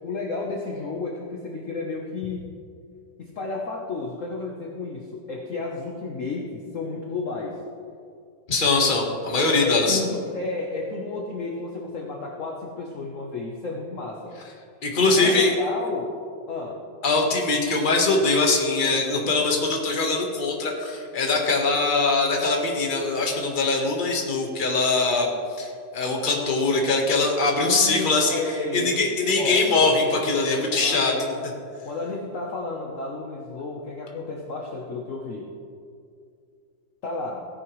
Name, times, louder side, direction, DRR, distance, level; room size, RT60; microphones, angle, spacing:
voice 1, 0.0-2.4 3.2-7.6 9.6-14.4 15.0-16.1 16.5-16.8 27.6-28.9 29.4-29.7 30.7-31.5 31.8-35.5 37.0-37.5, left 3 dB, 50° left, -1 dB, 1.2 m, -32 dB
voice 2, 8.5-10.0 14.8-15.5 17.0-25.3 25.6-28.4 28.7-31.1, left 3 dB, 30° left, 0 dB, 1.4 m, -22 dB
16.5 x 9.9 x 3.2 m, 2.3 s
omnidirectional pair, 2.1 m